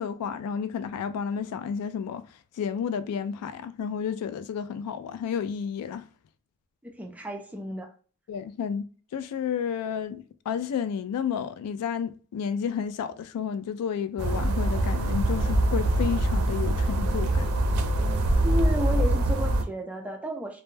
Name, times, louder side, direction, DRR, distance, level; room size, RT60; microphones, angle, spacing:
voice 1, 0.0-2.2 2.6-6.0 8.3-8.9 9.1-17.5, left 7 dB, 90° left, 0.3 m, -31 dB
voice 2, 6.8-7.9 18.4-20.6, equal, 5° right, 0.3 m, -32 dB
sound 1, 14.2-19.6, right 1 dB, 70° right, 0.4 m, -24 dB
2.1 x 2.1 x 3.1 m
head